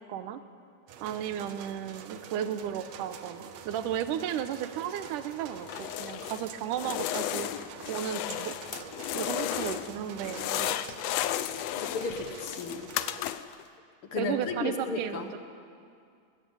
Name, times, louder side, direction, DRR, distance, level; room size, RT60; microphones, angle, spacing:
voice 1, 0.1-0.4 1.0-7.5 7.9-8.5 9.1-11.0 14.2-15.4, right 9 dB, 90° right, 11 dB, 2.4 m, -34 dB
sound 1, 0.9-13.2, right 8 dB, 65° right, 2.1 m, -46 dB
sound 2, 5.6-6.5 6.8-9.9 10.2-13.6, left 13 dB, 80° left, 1.4 m, -34 dB
voice 2, 9.1-9.5 10.0-10.4 11.8-12.9 14.1-15.3, left 4 dB, 50° left, 6 dB, 1.9 m, -35 dB
20.0 x 19.5 x 8.6 m, 2.3 s
omnidirectional pair, 3.6 m